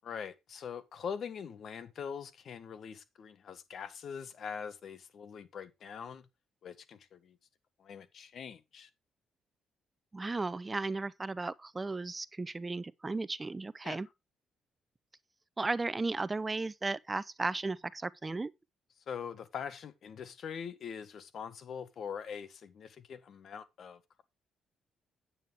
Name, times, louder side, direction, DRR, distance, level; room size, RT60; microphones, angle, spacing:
voice 1, 0.0-6.3 6.6-7.4 7.8-8.9 13.8-14.0 19.1-24.2, left 7 dB, 60° left, 1.4 m, -43 dB
voice 2, 10.1-14.1 15.6-18.5, right 3 dB, 25° right, 0.5 m, -35 dB
9.1 x 8.6 x 3.4 m
cardioid pair, 75°, 0 cm